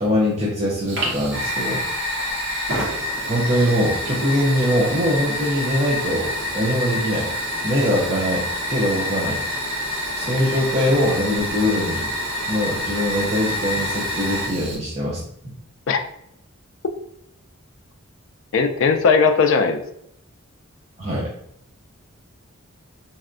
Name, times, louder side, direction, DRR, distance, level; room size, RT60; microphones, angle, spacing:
voice 1, 0.0-1.9 3.3-7.3 7.6-9.4 10.2-12.1 12.5-15.5 21.0-21.3, equal, 30° right, -5 dB, 0.5 m, -22 dB
Fire, 0.9-14.8, left 1 dB, 55° right, 0.9 m, -27 dB
voice 2, 18.5-19.8, left 5 dB, 60° left, 7 dB, 0.3 m, -17 dB
4.0 x 2.2 x 2.5 m, 0.75 s
head